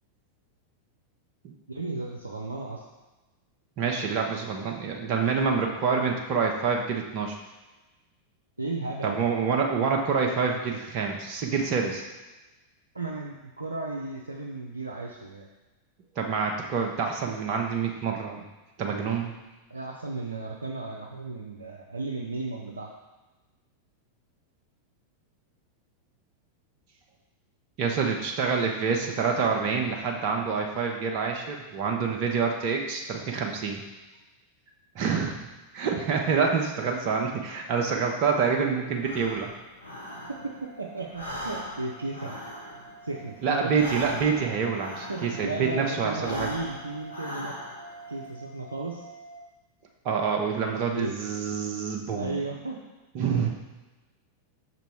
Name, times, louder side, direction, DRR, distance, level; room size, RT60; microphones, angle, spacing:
voice 1, 1.7-2.8 8.6-9.3 12.9-15.5 19.7-22.9 40.4-42.3 43.0-43.7 45.1-47.6 48.1-49.1 50.6-51.1 52.1-52.8, right 2 dB, 80° right, -2 dB, 0.5 m, -34 dB
voice 2, 3.8-7.4 9.0-12.0 16.2-18.4 18.8-19.3 27.8-33.8 34.9-35.4 35.7-39.5 43.4-46.5 50.0-52.4 53.1-53.5, right 5 dB, 40° right, 1 dB, 0.8 m, -27 dB
Breathing, 39.0-40.7 41.0-45.6 46.1-48.0, equal, 80° left, 1.0 m, -39 dB
sound 1, 40.1-49.4, right 3 dB, 5° left, 1.3 m, -48 dB
5.6 x 4.0 x 4.6 m, 1.1 s
figure-of-eight pair, 90°, 0 cm